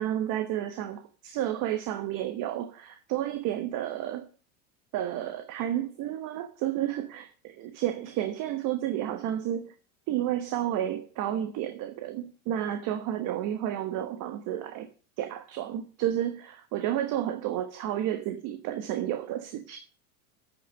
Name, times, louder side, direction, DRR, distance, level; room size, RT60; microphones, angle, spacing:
voice 1, 0.0-4.3 4.9-9.6 10.1-14.9 15.2-19.8, right 11 dB, 50° right, 1.2 m, -31 dB
8.9 x 6.2 x 7.6 m
supercardioid pair, 120°, 41 cm